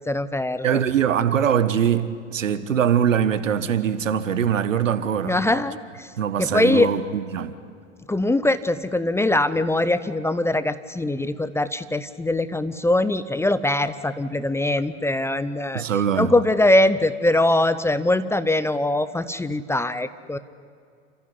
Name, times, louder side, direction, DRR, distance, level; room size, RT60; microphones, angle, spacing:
voice 1, 0.1-0.8 5.2-6.1 6.4-6.9 8.1-15.8 16.1-20.4, left 2 dB, 5° left, 0.6 m, -22 dB
voice 2, 0.6-5.3 6.2-7.5 15.7-16.3, right 8 dB, 80° right, 1.4 m, -22 dB
29.0 x 15.0 x 9.8 m
hypercardioid pair, 95°, 38 cm